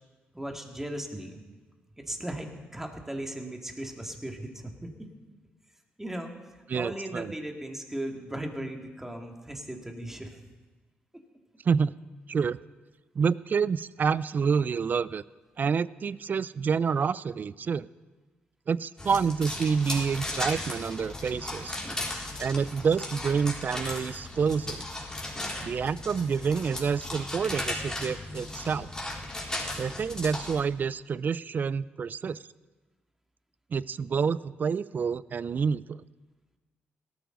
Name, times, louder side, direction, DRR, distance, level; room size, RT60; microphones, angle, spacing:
voice 1, 0.3-1.4 2.0-5.1 6.0-6.3 6.7-10.4 11.1-11.2 21.8-22.1, right 1 dB, 10° right, 3 dB, 2.2 m, -37 dB
voice 2, 6.7-7.3 11.6-11.9 12.3-12.6 13.2-15.2 15.6-17.9 18.7-21.8 22.4-24.8 25.6-28.9 29.8-32.4 33.7-36.0, right 6 dB, 45° right, 19 dB, 0.4 m, -28 dB
sound 1, 19.0-30.6, left 2 dB, 15° left, 3.6 m, -36 dB
17.5 x 13.5 x 3.9 m, 1.3 s
cardioid pair, 70°, 4 cm